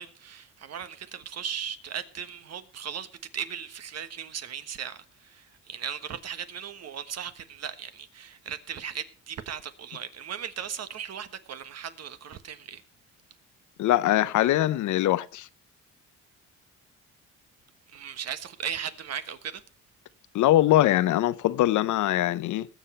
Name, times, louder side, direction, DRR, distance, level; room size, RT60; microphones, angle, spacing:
voice 1, 0.0-3.1 3.3-12.8 17.9-19.6, right 8 dB, 55° right, 1.4 m, -37 dB
voice 2, 13.8-15.5 20.3-22.7, left 14 dB, 80° left, 0.7 m, -22 dB
19.5 x 7.5 x 4.4 m
cardioid pair, 90°, 30 cm